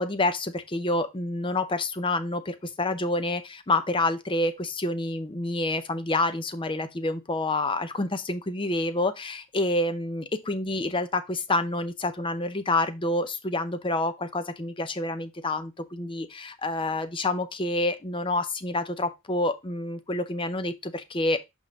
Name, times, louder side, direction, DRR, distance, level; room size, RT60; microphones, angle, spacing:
voice 1, 0.0-21.4, left 2 dB, 25° left, 0.6 m, -28 dB
5.6 x 5.3 x 3.5 m
head